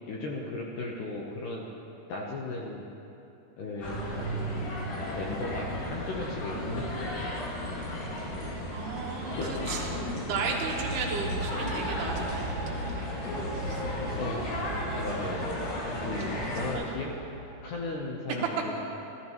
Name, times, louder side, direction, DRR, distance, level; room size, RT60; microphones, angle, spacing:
voice 1, 0.1-1.7 2.1-2.9 3.6-4.7 5.1-7.3 9.4-9.6 14.2-14.4 14.9-15.6 16.0-17.1 17.6-18.8, left 2 dB, 70° left, -2 dB, 2.0 m, -36 dB
walking to pioneer square, 3.8-16.7, left 1 dB, 85° left, 4.2 m, -34 dB
voice 2, 8.7-13.1 13.6-13.8 16.2-16.8, right 4 dB, 80° right, 0 dB, 3.1 m, -35 dB
sound 1, 10.2-18.0, right 3 dB, 55° right, 3.4 m, -39 dB
14.5 x 14.0 x 3.0 m, 3.0 s
omnidirectional pair, 4.7 m